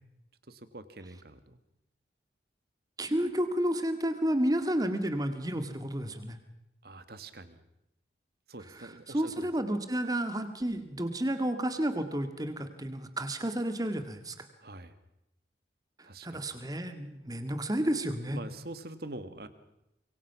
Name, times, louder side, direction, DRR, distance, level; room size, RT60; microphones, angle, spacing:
voice 1, 0.5-1.6 6.8-7.6 8.5-9.5 14.6-14.9 16.0-16.5 18.3-19.5, right 2 dB, 55° right, 12 dB, 1.6 m, -45 dB
voice 2, 3.0-6.4 8.8-14.5 16.0-18.4, right 1 dB, 20° right, 8 dB, 1.9 m, -31 dB
25.5 x 23.0 x 5.9 m, 0.87 s
head